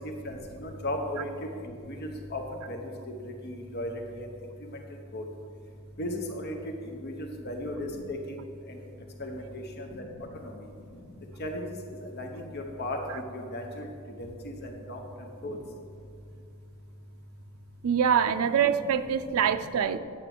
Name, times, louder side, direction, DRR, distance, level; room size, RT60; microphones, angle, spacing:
voice 1, 0.2-1.3 1.9-2.4 2.7-2.8 3.4-3.9 4.2-4.3 5.1-5.2 6.0-6.6 7.0-7.1 7.4-8.2 9.2-9.4 9.9-10.0 11.4-11.6 12.2-13.0 13.3-13.9 14.4-14.5 14.9-15.0 15.4-15.6, left 1 dB, 50° left, 3 dB, 0.9 m, -35 dB
voice 2, 17.8-20.0, right 8 dB, 75° right, 9 dB, 0.4 m, -24 dB
9.0 x 7.5 x 6.0 m, 2.4 s
head